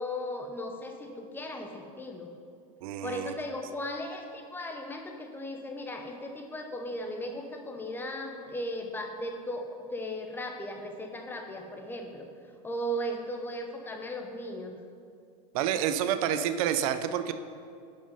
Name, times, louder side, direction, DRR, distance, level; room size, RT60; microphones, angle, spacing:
voice 1, 0.0-2.3 3.0-12.3 12.6-14.8, equal, 10° left, 3 dB, 0.8 m, -37 dB
voice 2, 2.8-3.3 15.5-17.3, right 9 dB, 70° right, 10 dB, 0.6 m, -28 dB
11.0 x 5.3 x 5.4 m, 2.3 s
supercardioid pair, 150°, 19 cm